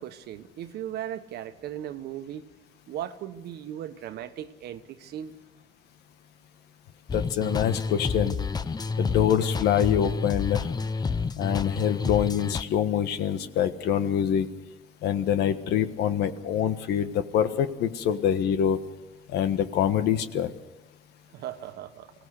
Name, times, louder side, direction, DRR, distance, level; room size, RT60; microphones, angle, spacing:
voice 1, 0.0-2.5 2.9-5.4 21.3-22.1, right 11 dB, 75° right, 10 dB, 1.3 m, -37 dB
voice 2, 7.1-8.4 9.0-10.7 11.4-14.5 15.0-18.8 19.3-20.5, left 9 dB, 75° left, 10 dB, 1.5 m, -25 dB
sound 1, 7.1-12.6, left 4 dB, 25° left, 0.8 m, -29 dB
24.0 x 17.5 x 6.6 m, 1.1 s
cardioid pair, 110°, 17 cm